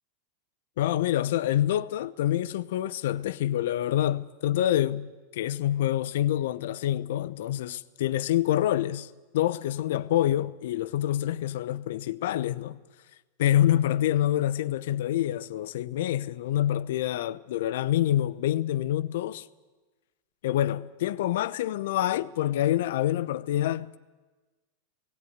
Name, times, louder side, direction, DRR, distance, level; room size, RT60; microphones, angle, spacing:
voice 1, 0.8-9.1 9.3-12.8 13.4-19.4 20.4-24.0, left 12 dB, 70° left, 0.7 m, -26 dB
18.0 x 17.0 x 9.5 m
hypercardioid pair, 105°, 0 cm